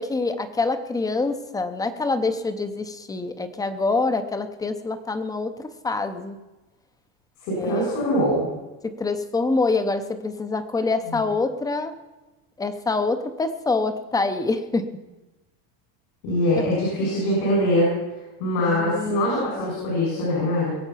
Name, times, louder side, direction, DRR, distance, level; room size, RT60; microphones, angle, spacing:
voice 1, 0.0-6.4 7.6-8.0 8.8-11.9 12.6-14.9 16.6-16.7 18.7-19.2 19.5-19.7, left 3 dB, 10° left, 9 dB, 0.7 m, -26 dB
voice 2, 7.4-8.5 11.1-11.2 16.2-17.9 18.4-20.8, left 1 dB, 85° left, -4 dB, 6.9 m, -23 dB
22.5 x 8.0 x 5.7 m, 1.1 s
cardioid pair, 165°, 45 cm